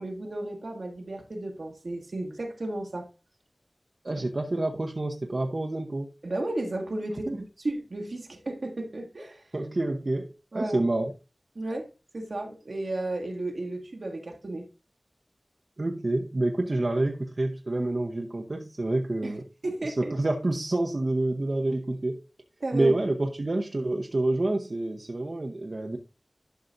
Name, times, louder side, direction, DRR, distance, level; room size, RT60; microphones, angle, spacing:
voice 1, 0.0-3.1 6.2-7.3 7.6-9.4 10.5-10.8 11.5-11.9 12.1-14.6 19.2-19.3 19.6-20.1 22.6-22.9, right 2 dB, 90° right, 1.6 m, -33 dB
voice 2, 4.0-6.1 7.3-7.4 9.5-11.1 15.8-19.5 19.8-22.2 22.7-26.0, right 2 dB, 65° right, 0.8 m, -28 dB
11.5 x 5.7 x 2.6 m
wide cardioid pair, 45°, 0 cm